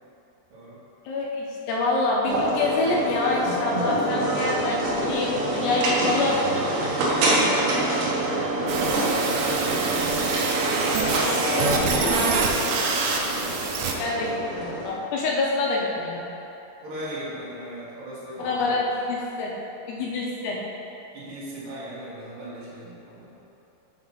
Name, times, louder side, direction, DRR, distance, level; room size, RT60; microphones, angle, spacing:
voice 1, 1.1-6.4 11.3-12.2 14.0-16.3 18.4-19.5 19.9-20.6, left 3 dB, 80° left, -3 dB, 2.6 m, -26 dB
sound 1, 2.3-14.9, right 1 dB, 65° right, 2.2 m, -26 dB
voice 2, 3.4-3.9 6.9-10.4 11.4-13.8 14.2-14.3 16.8-18.9 21.1-23.3, right 1 dB, 50° right, -9 dB, 1.7 m, -37 dB
sound 2, 8.7-13.9, right 4 dB, 85° right, 2.1 m, -26 dB
6.1 x 5.8 x 5.6 m, 2.9 s
omnidirectional pair, 5.2 m